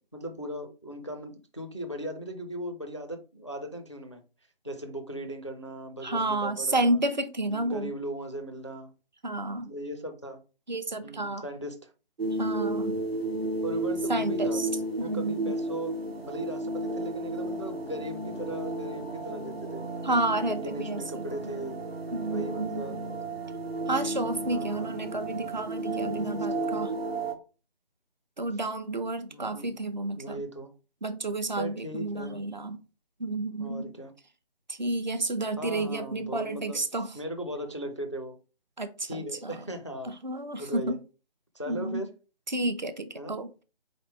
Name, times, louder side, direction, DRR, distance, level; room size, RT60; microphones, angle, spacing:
voice 1, 0.1-4.2 4.6-7.0 7.5-8.9 9.7-10.4 11.0-11.9 13.6-14.6 15.0-19.8 20.3-21.8 22.3-23.0 24.5-25.0 26.0-26.9 29.3-29.7 30.2-30.7 31.6-32.4 33.6-34.1 35.6-36.8 37.1-38.4 39.1-40.1 40.6-41.0 41.5-42.1 43.2-43.4, right 1 dB, 30° left, 0.4 m, -38 dB
voice 2, 6.0-7.9 9.2-9.7 10.7-11.4 12.4-13.0 14.1-14.7 15.0-15.5 20.0-21.0 22.1-23.0 23.9-26.9 28.4-30.4 31.0-32.8 33.2-33.9 34.7-37.1 38.8-39.6 40.2-41.0 41.7-42.0 42.5-43.6, right 2 dB, 45° right, 0.6 m, -30 dB
sound 1, 12.2-27.3, right 2 dB, 75° right, 1.1 m, -33 dB
4.0 x 3.2 x 3.1 m
figure-of-eight pair, 155°, 31 cm